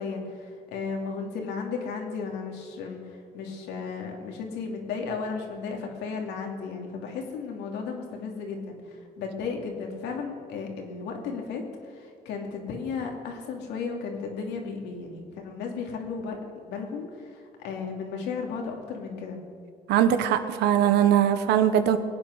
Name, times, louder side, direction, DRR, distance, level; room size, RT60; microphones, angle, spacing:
voice 1, 0.0-16.4 16.7-19.4, left 5 dB, 85° left, 2 dB, 2.6 m, -34 dB
voice 2, 19.9-22.0, right 10 dB, 80° right, 9 dB, 1.1 m, -21 dB
21.5 x 8.9 x 6.3 m, 2.2 s
cardioid pair, 110°, 17 cm